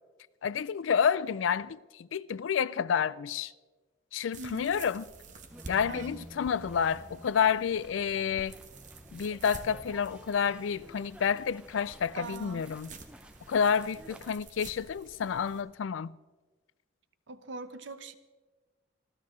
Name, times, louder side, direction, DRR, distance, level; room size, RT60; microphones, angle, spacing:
voice 1, 0.4-3.5 4.1-5.1 5.7-8.6 9.1-12.9 13.5-16.1, left 7 dB, 80° left, 0.4 m, -29 dB
sound 1, 4.3-15.6, right 3 dB, 40° right, 1.2 m, -50 dB
sound 2, 5.5-14.3, equal, 5° right, 0.8 m, -51 dB
voice 2, 5.9-6.2 12.1-12.7 17.3-18.1, right 3 dB, 75° right, 0.9 m, -42 dB
27.5 x 13.0 x 3.2 m
head